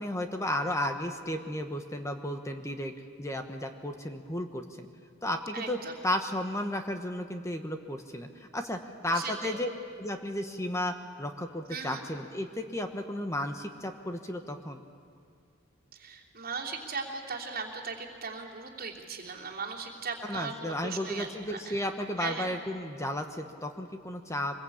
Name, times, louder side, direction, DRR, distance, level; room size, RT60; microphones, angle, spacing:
voice 1, 0.0-2.9 3.2-4.9 5.2-9.7 10.0-14.8 20.3-24.6, left 1 dB, 15° left, 5 dB, 1.1 m, -33 dB
voice 2, 5.5-5.9 9.1-9.5 11.7-12.0 15.9-21.8 22.2-22.5, right 4 dB, 50° right, -1 dB, 3.1 m, -38 dB
24.0 x 21.5 x 8.6 m, 2.2 s
head